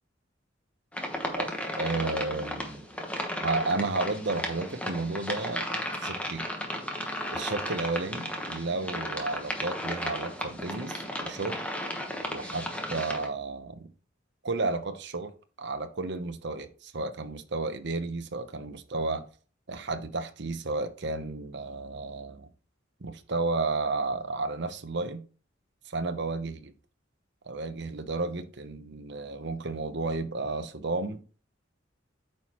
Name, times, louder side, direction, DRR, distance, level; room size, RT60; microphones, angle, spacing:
sound 1, 0.9-13.3, left 1 dB, 5° left, 1.2 m, -34 dB
voice 1, 1.8-2.9 3.4-5.7 5.9-6.5 7.3-11.6 12.3-13.9 14.4-19.3 19.7-22.5 23.0-25.2 25.8-26.7 27.5-31.2, right 3 dB, 60° right, 0.9 m, -32 dB
8.8 x 5.7 x 3.1 m
head